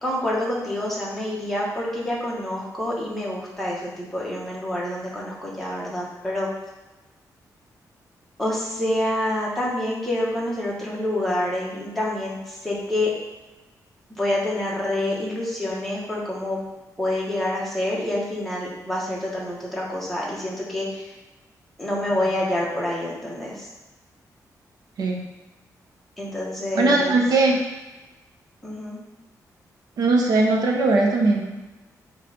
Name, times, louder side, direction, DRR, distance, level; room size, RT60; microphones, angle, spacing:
voice 1, 0.0-6.5 8.4-13.1 14.1-16.6 17.0-21.1 21.8-23.7 26.2-27.2 28.6-29.0, left 1 dB, ahead, -5 dB, 1.6 m, -27 dB
voice 2, 26.7-27.6 30.0-31.4, right 3 dB, 75° right, 1 dB, 0.9 m, -19 dB
7.8 x 3.3 x 5.2 m, 1.1 s
wide cardioid pair, 165°, 7 cm